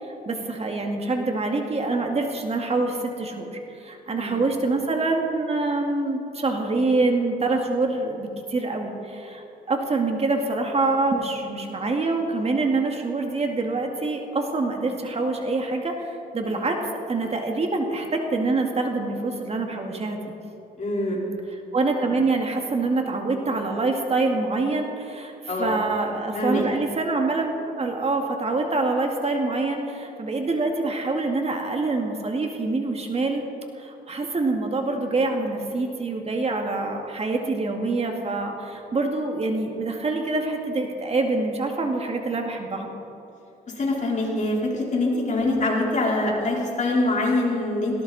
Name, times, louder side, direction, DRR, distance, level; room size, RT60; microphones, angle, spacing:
voice 1, 0.1-16.8 17.1-20.2 21.7-25.3 25.6-33.4 33.8-42.9, right 3 dB, 40° right, 2 dB, 2.2 m, -25 dB
voice 2, 4.1-4.5 20.8-21.2 25.5-25.7 26.3-26.6 43.8-48.0, left 2 dB, 45° left, -3 dB, 4.5 m, -24 dB
18.5 x 18.0 x 4.3 m, 2.9 s
cardioid pair, 95°, 17 cm